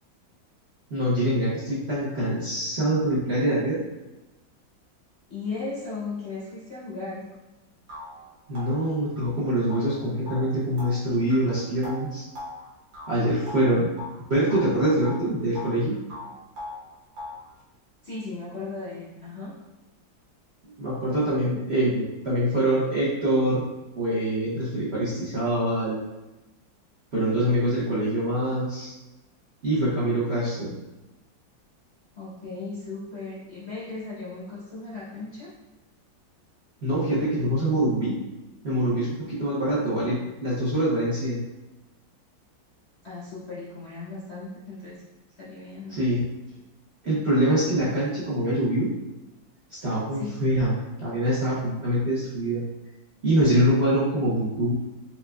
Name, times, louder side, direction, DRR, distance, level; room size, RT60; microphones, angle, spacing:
voice 1, 0.9-3.8 8.5-12.3 13.1-13.9 14.3-15.9 20.8-23.6 24.0-26.0 27.1-28.9 29.6-30.7 36.8-38.2 38.6-41.4 45.9-46.2 47.0-48.9 49.8-50.7 51.0-52.6 53.2-54.7, right 1 dB, 50° right, -9 dB, 0.8 m, -24 dB
voice 2, 5.3-7.2 18.0-19.5 32.1-35.5 43.0-45.0 45.4-46.0 50.1-50.4, left 3 dB, 50° left, -8 dB, 0.8 m, -36 dB
sound 1, 7.3-7.4 7.9-14.2 14.5-15.8 16.1-17.5, left 2 dB, 75° right, 1.7 m, -41 dB
4.5 x 3.7 x 2.3 m, 1.0 s
omnidirectional pair, 2.1 m